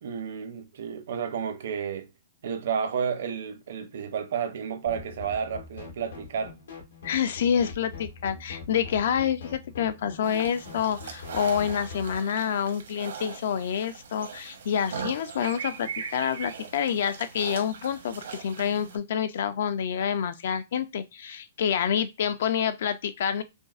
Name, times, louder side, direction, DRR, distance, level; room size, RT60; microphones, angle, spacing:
voice 1, 0.0-2.1 2.4-6.5, right 7 dB, 55° right, 0.6 m, -31 dB
sound 1, 4.9-12.2, left 5 dB, 85° left, 1.6 m, -43 dB
voice 2, 7.0-23.4, left 8 dB, 50° left, 0.4 m, -28 dB
sound 2, 10.2-19.0, right 6 dB, 80° right, 1.0 m, -40 dB
5.1 x 2.0 x 2.4 m
hypercardioid pair, 175°, 0 cm